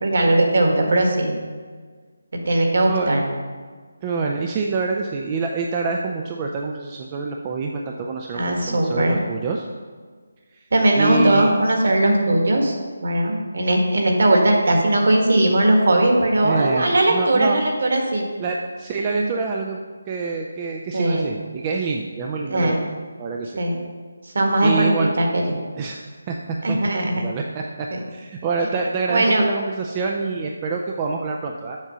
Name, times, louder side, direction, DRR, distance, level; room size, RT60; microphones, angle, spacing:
voice 1, 0.0-1.3 2.5-3.2 8.3-9.2 10.7-12.7 13.0-18.2 19.1-19.4 20.9-21.3 22.5-22.8 23.6-23.8 24.3-25.4 26.6-27.2 27.9-28.0 29.1-29.4, right 1 dB, 45° right, 1 dB, 1.6 m, -19 dB
voice 2, 4.0-9.7 10.5-10.6 10.9-11.5 16.4-17.6 18.4-19.8 20.1-22.8 23.2-23.6 24.6-25.1 25.8-26.4 26.7-26.8 27.2-31.8, right 4 dB, 15° right, 1 dB, 0.3 m, -26 dB
7.3 x 6.0 x 6.6 m, 1.5 s
figure-of-eight pair, 180°, 0 cm